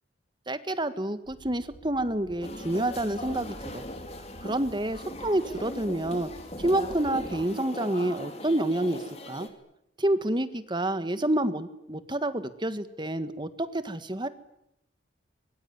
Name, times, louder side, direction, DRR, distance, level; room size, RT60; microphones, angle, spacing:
voice 1, 0.5-3.8 4.4-6.3 6.6-9.5 10.0-14.3, right 1 dB, 25° right, 12 dB, 1.6 m, -28 dB
sound 1, 1.2-7.4, equal, 80° left, 7.2 m, -49 dB
sound 2, 2.4-9.5, left 1 dB, 35° left, 3.4 m, -40 dB
24.0 x 22.5 x 9.5 m, 0.78 s
head